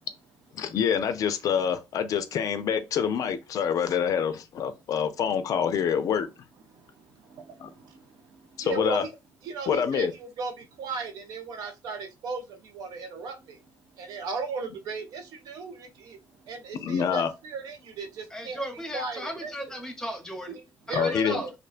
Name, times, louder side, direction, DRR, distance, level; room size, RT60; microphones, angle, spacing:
voice 1, 0.5-6.3 7.6-7.7 8.6-9.0 9.7-10.1 16.8-17.3 20.9-21.4, left 7 dB, 60° left, 0.4 m, -26 dB
voice 2, 6.7-9.1 9.4-13.6 13.9-16.2 16.5-18.6 18.9-19.5 20.5-21.5, right 4 dB, 80° right, 0.6 m, -36 dB
voice 3, 18.3-20.6 20.9-21.5, equal, 10° left, 0.8 m, -36 dB
2.5 x 2.2 x 2.4 m
cardioid pair, 100°, 7 cm